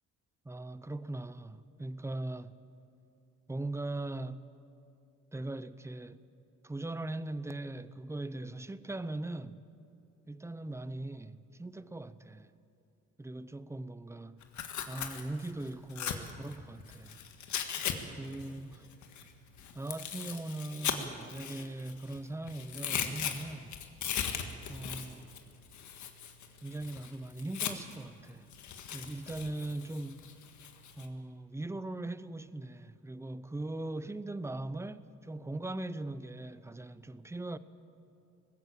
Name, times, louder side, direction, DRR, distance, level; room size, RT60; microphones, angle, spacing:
voice 1, 0.4-2.5 3.5-4.4 5.3-6.2 6.6-9.7 10.3-12.5 13.2-14.4 14.9-17.2 18.2-18.9 19.7-23.7 24.7-25.3 26.6-28.5 28.9-30.2 31.0-37.6, right 2 dB, 10° right, 0.7 m, -40 dB
Tearing, 14.4-17.9 18.2-22.2 22.5-28.0 28.5-31.1, left 8 dB, 70° left, 1.7 m, -38 dB
19.5 x 15.5 x 8.8 m
cardioid pair, 90°, 30 cm